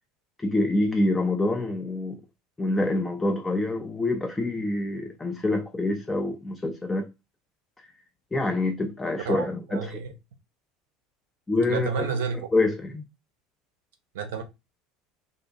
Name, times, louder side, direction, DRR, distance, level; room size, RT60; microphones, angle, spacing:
voice 1, 0.4-2.2 2.6-7.1 8.3-10.0 11.5-12.0 12.5-13.0, left 2 dB, 15° left, 0.4 m, -26 dB
voice 2, 9.2-10.1 11.7-12.5 14.1-14.4, right 6 dB, 70° right, 0.5 m, -30 dB
2.6 x 2.1 x 2.6 m
figure-of-eight pair, 70°, 0 cm